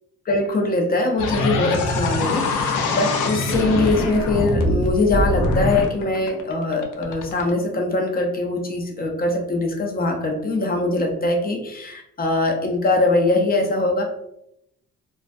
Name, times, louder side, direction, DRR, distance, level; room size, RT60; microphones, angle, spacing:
voice 1, 0.3-14.0, left 2 dB, 30° left, 2 dB, 0.6 m, -22 dB
sound 1, 1.2-7.5, left 2 dB, 85° left, 0.5 m, -23 dB
2.2 x 2.2 x 2.5 m, 0.79 s
cardioid pair, 90°, 30 cm